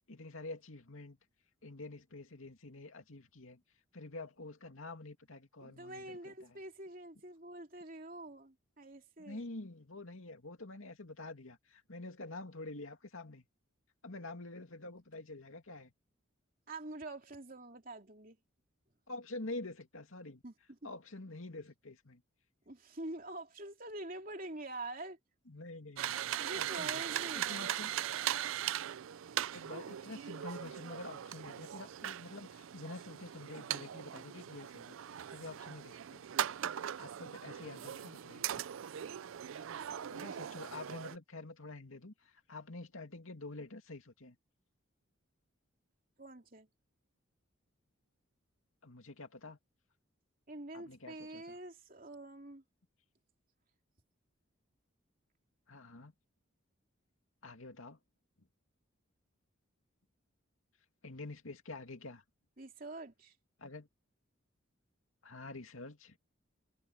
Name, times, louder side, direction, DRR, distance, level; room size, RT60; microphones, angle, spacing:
voice 1, 0.1-1.2 1.6-3.6 3.9-6.6 9.2-13.5 14.0-15.9 19.1-20.4 20.8-22.2 25.5-27.0 27.3-27.9 29.5-35.0 35.3-36.2 37.0-38.5 40.1-44.4 48.8-49.6 50.7-51.6 55.7-56.1 57.4-58.0 61.0-62.2 63.6-63.9 65.2-66.2, left 2 dB, 80° left, 2.5 m, -47 dB
voice 2, 5.6-9.5 16.7-18.4 20.4-20.9 22.7-25.2 26.4-27.8 46.2-46.7 50.5-52.6 62.6-63.3, right 2 dB, 40° right, 3.2 m, -46 dB
sound 1, 26.0-41.2, right 10 dB, 75° right, 0.4 m, -40 dB
head